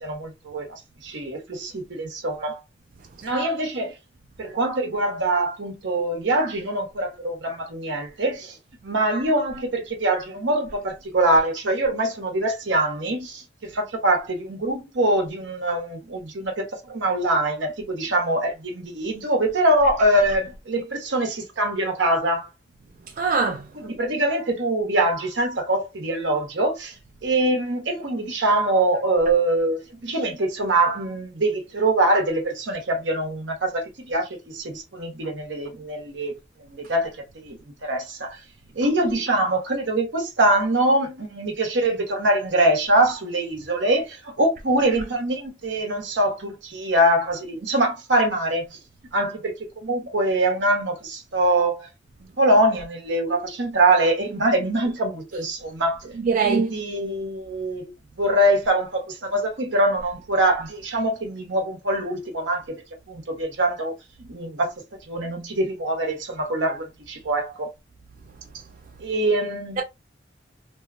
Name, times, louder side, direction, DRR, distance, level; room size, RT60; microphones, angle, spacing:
voice 1, 0.0-2.6 3.2-3.9 4.4-8.6 8.8-22.5 23.8-26.9 27.2-36.4 36.7-38.4 38.7-48.8 49.1-51.9 52.4-56.1 56.4-57.9 58.2-63.9 64.3-64.7 65.1-67.7 69.0-69.8, right 1 dB, 75° right, 0.9 m, -23 dB
voice 2, 23.2-23.7 56.2-56.7 69.8-69.9, right 5 dB, 45° right, 0.3 m, -22 dB
2.7 x 2.2 x 2.5 m
head